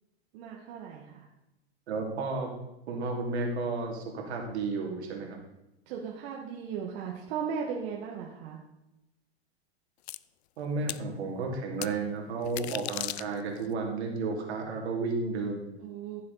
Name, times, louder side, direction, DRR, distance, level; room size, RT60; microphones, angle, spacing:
voice 1, 0.3-1.2 5.9-8.6 15.8-16.2, right 7 dB, 60° right, -1 dB, 2.0 m, -37 dB
voice 2, 1.9-2.5 2.9-5.4 10.6-15.7, right 3 dB, 75° right, 1 dB, 3.0 m, -32 dB
sound 1, 10.1-10.2 10.9-11.0 11.8-11.9 12.4-13.7, left 16 dB, 70° left, 0.5 m, -36 dB
14.5 x 7.5 x 4.1 m, 0.94 s
hypercardioid pair, 105°, 33 cm